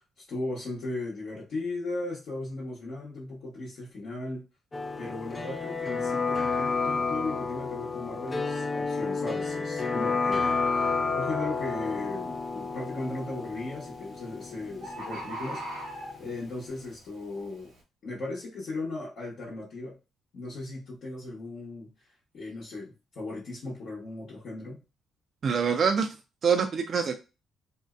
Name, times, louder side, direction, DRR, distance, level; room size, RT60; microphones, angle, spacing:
voice 1, 0.2-4.5 5.0-10.9 11.1-15.6 16.2-17.7 18.0-20.0 20.3-21.9 22.3-24.8, left 2 dB, 65° left, -7 dB, 0.9 m, -37 dB
sound 1, 4.7-16.4 16.7-16.8, left 4 dB, 25° left, 0.4 m, -31 dB
Bird, 11.5-11.8 12.3-12.8 13.8-13.9 14.2-14.3 14.5-14.6 14.8-16.5 17.1-17.2, right 1 dB, 85° right, 1.0 m, -38 dB
voice 2, 25.4-26.2 26.4-27.2, right 6 dB, 50° right, 6 dB, 0.3 m, -25 dB
2.6 x 2.1 x 2.3 m, 0.29 s
cardioid pair, 90°, 0 cm